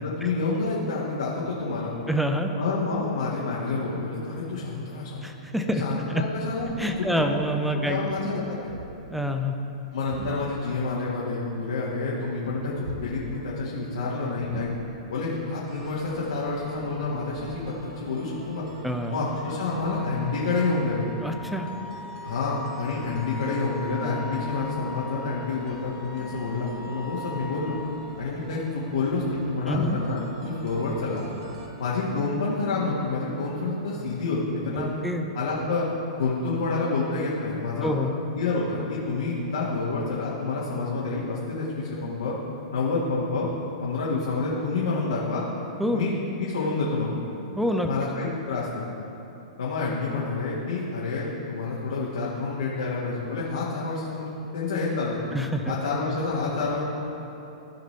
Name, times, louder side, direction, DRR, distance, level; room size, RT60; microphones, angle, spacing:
voice 1, 0.0-1.9 2.6-5.3 5.8-6.7 7.0-7.4 7.7-8.7 9.9-14.7 15.1-18.6 19.1-21.1 22.2-27.8 28.2-31.3 31.8-34.9 35.3-35.9 36.2-37.9 38.3-42.3 42.7-43.5 43.8-45.4 45.9-46.1 46.4-47.1 47.8-48.8 49.6-55.2 55.7-56.8, left 3 dB, 75° left, -6 dB, 1.6 m, -28 dB
voice 2, 2.1-2.5 5.2-5.8 6.1-6.2 6.8-8.2 9.1-9.5 18.8-19.1 21.2-21.7 29.7-30.0 34.8-35.3 37.8-38.1 45.8-46.0 47.6-47.9 55.3-55.8 56.1-56.2, equal, ahead, 5 dB, 0.7 m, -27 dB
sound 1, 6.5-7.4 7.6-8.0 8.5-9.2 9.9-10.7 11.0-12.0 12.3-13.5 13.8-13.9 14.4-15.2 15.6-17.5, right 1 dB, 85° right, 1.0 m, -41 dB
sound 2, 15.7-31.7, right 3 dB, 60° right, 1.2 m, -44 dB
Wind instrument woodwind instrument, 18.4-27.9, left 3 dB, 25° left, 1.5 m, -41 dB
15.0 x 5.2 x 3.3 m, 2.9 s
hypercardioid pair, 115°, 3 cm